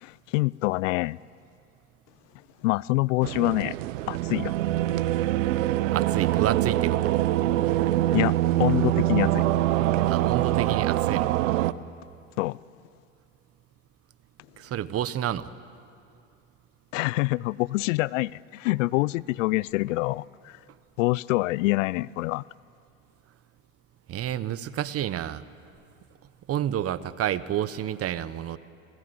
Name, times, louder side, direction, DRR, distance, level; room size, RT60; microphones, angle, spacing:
voice 1, 0.0-1.2 2.6-3.8 4.1-4.5 8.1-8.3 8.6-9.4 12.4-12.6 16.9-20.6 21.0-22.4, left 21 dB, 70° left, 0.6 m, -26 dB
sound 1, 3.2-11.7, right 14 dB, 70° right, 0.9 m, -24 dB
voice 2, 5.9-7.2 10.1-11.4 14.6-15.5 24.1-25.4 26.5-28.6, right 11 dB, 35° right, 1.1 m, -29 dB
28.0 x 19.0 x 9.6 m
hypercardioid pair, 90°, 40 cm